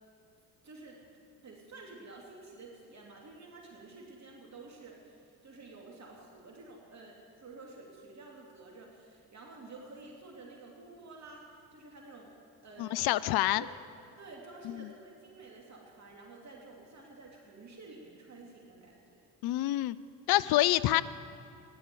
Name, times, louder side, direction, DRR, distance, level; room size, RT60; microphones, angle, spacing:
voice 1, 0.6-1.0 1.4-12.4 12.6-13.0 13.3-13.7 14.2-19.2, right 3 dB, 40° right, -1 dB, 2.8 m, -51 dB
voice 2, 12.8-13.6 14.6-14.9 19.4-20.0 20.3-21.0, left 16 dB, 60° left, 18 dB, 0.6 m, -27 dB
15.5 x 11.0 x 6.9 m, 2.6 s
hypercardioid pair, 65°, 43 cm